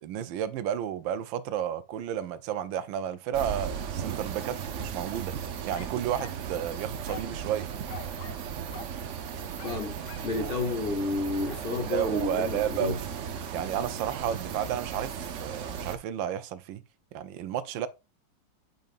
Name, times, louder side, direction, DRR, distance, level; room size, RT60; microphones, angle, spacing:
voice 1, 0.0-5.3 5.6-7.7 10.3-10.5 11.6-13.0 13.5-16.8 17.1-17.9, right 10 dB, 85° right, 1.4 m, -32 dB
sound 1, 3.3-16.0, right 7 dB, 60° right, 0.8 m, -36 dB
sound 2, 5.7-6.5 7.1-7.4 7.9-8.5 8.7-9.0 9.6-10.4 11.5-11.7, left 10 dB, 65° left, 1.3 m, -45 dB
voice 2, 9.6-10.0 10.2-13.0, left 3 dB, 50° left, 0.7 m, -31 dB
7.8 x 5.3 x 2.5 m
omnidirectional pair, 2.0 m